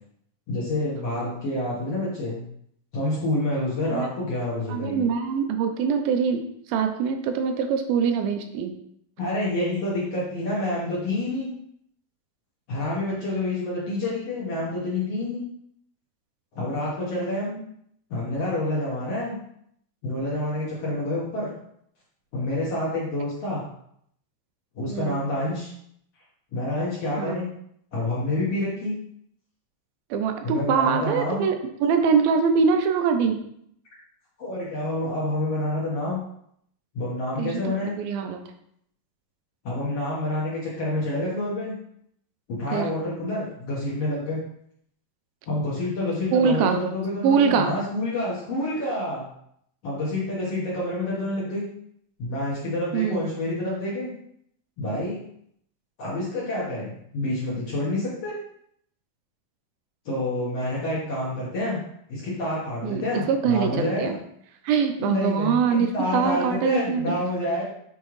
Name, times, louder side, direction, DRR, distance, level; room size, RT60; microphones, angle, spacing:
voice 1, 0.5-2.4 2.9-5.0 9.2-11.5 12.7-15.4 16.5-17.6 18.1-19.4 20.0-21.5 22.3-23.6 24.7-25.7 26.5-27.5 27.9-28.9 30.4-31.4 34.4-36.2 36.9-38.0 39.6-41.7 42.5-44.4 45.5-49.2 49.8-51.7 52.2-54.1 54.8-55.2 56.0-58.3 60.1-61.8 62.1-64.1 65.0-67.6, left 1 dB, 55° left, -6 dB, 1.9 m, -28 dB
voice 2, 4.7-6.4 6.7-8.7 24.9-25.2 27.2-27.5 30.1-33.4 37.4-38.5 42.7-42.9 46.3-46.8 47.2-47.7 52.9-53.3 62.8-64.2 64.6-65.9 66.1-67.2, right 6 dB, 85° right, 6 dB, 2.5 m, -23 dB
7.2 x 4.5 x 3.1 m, 0.70 s
omnidirectional pair, 4.3 m